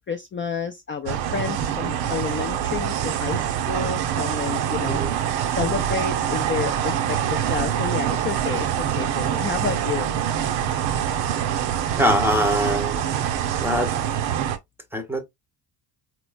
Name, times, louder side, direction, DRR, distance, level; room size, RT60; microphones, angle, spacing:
voice 1, 0.0-5.0 5.5-10.1, left 6 dB, 30° left, 0.4 m, -30 dB
sound 1, 1.1-14.6, right 9 dB, 85° right, 0.8 m, -25 dB
voice 2, 12.0-13.0 13.6-13.9 14.9-15.2, equal, 5° right, 0.7 m, -22 dB
4.2 x 3.1 x 2.2 m
cardioid pair, 115°, 44 cm